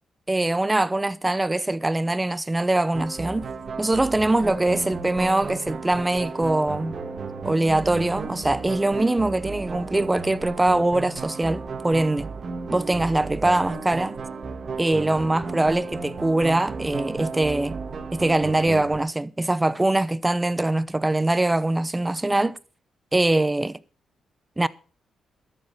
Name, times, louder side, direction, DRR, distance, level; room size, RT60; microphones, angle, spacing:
voice 1, 0.3-3.5 3.8-7.0 7.4-12.3 12.7-14.2 14.8-17.8 18.1-22.6 23.1-23.8 24.6-24.7, right 2 dB, 15° right, 0.7 m, -23 dB
sound 1, 2.9-19.0, right 4 dB, 50° right, 2.0 m, -34 dB
12.5 x 7.7 x 6.9 m
cardioid pair, 85°, 0 cm